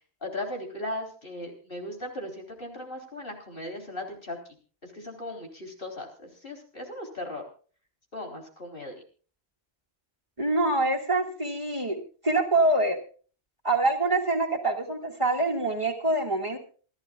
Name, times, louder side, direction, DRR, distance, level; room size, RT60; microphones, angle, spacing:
voice 1, 0.2-4.4 4.8-7.4 8.1-9.0, left 1 dB, 55° left, 2 dB, 4.1 m, -37 dB
voice 2, 10.4-13.0 13.6-16.6, right 2 dB, 30° right, 1 dB, 2.2 m, -25 dB
28.0 x 11.5 x 2.4 m, 0.40 s
omnidirectional pair, 1.1 m